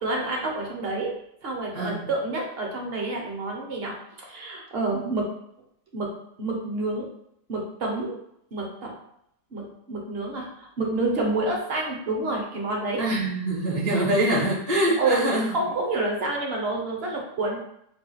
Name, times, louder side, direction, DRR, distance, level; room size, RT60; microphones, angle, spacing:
voice 1, 0.0-1.1 1.4-5.3 5.9-6.1 6.4-7.1 7.5-8.2 8.5-8.9 9.5-13.0 15.0-17.6, right 2 dB, 45° right, -1 dB, 0.9 m, -28 dB
voice 2, 13.0-15.5, right 1 dB, 65° right, -5 dB, 1.8 m, -24 dB
4.8 x 2.4 x 4.0 m, 0.74 s
omnidirectional pair, 1.8 m